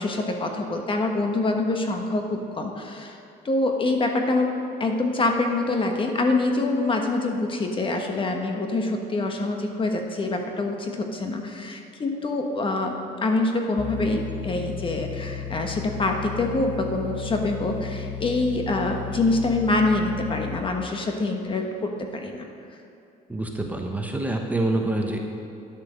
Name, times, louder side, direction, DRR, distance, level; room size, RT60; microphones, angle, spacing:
voice 1, 0.0-3.2 3.4-22.5, left 2 dB, 30° left, 3 dB, 1.2 m, -25 dB
sound 1, 13.8-20.6, left 8 dB, 10° left, 0.7 m, -34 dB
voice 2, 23.3-25.2, right 2 dB, 10° right, 2 dB, 1.1 m, -26 dB
10.0 x 8.8 x 6.3 m, 2.7 s
cardioid pair, 110°, 17 cm